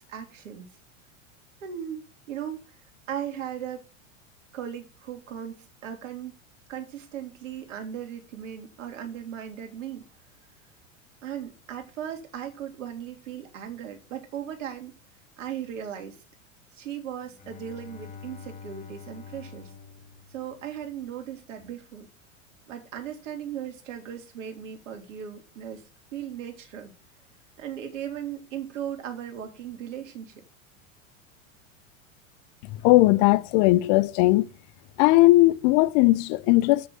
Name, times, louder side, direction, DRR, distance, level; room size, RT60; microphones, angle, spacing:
voice 1, 0.1-0.7 1.6-2.0 2.3-2.8 3.1-3.9 4.5-6.4 6.7-10.1 11.2-15.0 15.4-16.2 16.7-19.7 20.3-22.1 22.7-25.8 26.1-26.9 27.6-30.4, right 9 dB, 70° right, 3.2 m, -37 dB
Bowed string instrument, 17.3-21.1, left 6 dB, 20° left, 2.2 m, -46 dB
voice 2, 32.6-34.5 35.0-36.9, left 19 dB, 45° left, 0.9 m, -19 dB
8.1 x 6.5 x 7.4 m
hypercardioid pair, 95°, 40 cm